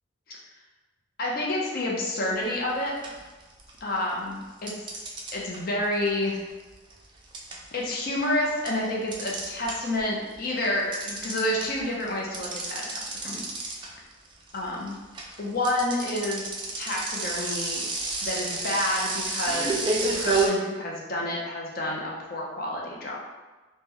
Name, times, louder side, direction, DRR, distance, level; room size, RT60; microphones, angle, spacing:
voice 1, 1.2-2.9 3.8-4.9 5.3-6.4 7.7-13.4 14.5-15.0 15.4-16.5 16.8-17.9 18.2-19.9 20.1-22.0 22.3-23.2, left 1 dB, 50° left, -3 dB, 0.5 m, -29 dB
sound 1, 2.5-2.7 3.0-4.0 4.7-10.0 10.3-20.5, right 3 dB, 25° right, 0.3 m, -30 dB
3.0 x 2.1 x 3.5 m, 1.2 s
head